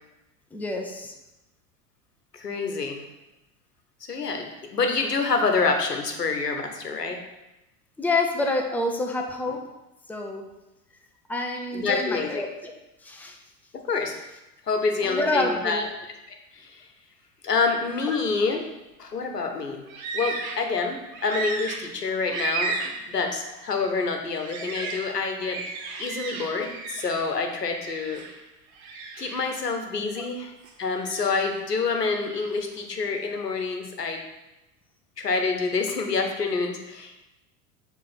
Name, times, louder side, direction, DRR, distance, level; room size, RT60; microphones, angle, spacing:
voice 1, 0.5-1.1 8.0-9.7 10.1-10.5 11.3-13.4 15.0-15.9 18.0-18.2 24.8-24.9 25.2-25.3 30.2-30.3, left 2 dB, 5° left, 2 dB, 0.6 m, -28 dB
voice 2, 2.3-3.0 4.1-7.2 11.7-12.5 13.7-14.2 14.7-15.8 16.3-16.9 17.4-18.6 19.0-19.8 20.1-25.6 26.0-28.2 29.2-30.5 30.8-34.2 35.2-37.2, left 4 dB, 90° left, 4 dB, 1.0 m, -27 dB
sound 1, 19.9-20.7 21.1-23.1 23.6-23.7 24.4-27.3 27.7-28.4 28.7-29.6 30.6-31.6 32.0-32.6, right 3 dB, 60° right, 1.3 m, -34 dB
7.5 x 3.3 x 5.6 m, 0.97 s
figure-of-eight pair, 85°, 47 cm